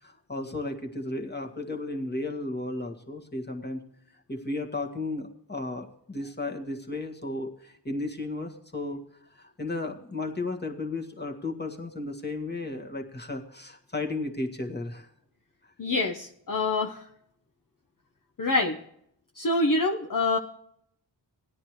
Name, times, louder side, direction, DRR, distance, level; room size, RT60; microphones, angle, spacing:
voice 1, 0.0-3.8 4.3-9.0 9.3-15.1 15.6-15.7, left 2 dB, 25° left, 2 dB, 1.8 m, -34 dB
voice 2, 15.8-17.1 18.4-18.8 19.3-20.4, left 2 dB, 50° left, 3 dB, 1.0 m, -26 dB
17.5 x 10.0 x 3.2 m, 0.70 s
cardioid pair, 45°, 43 cm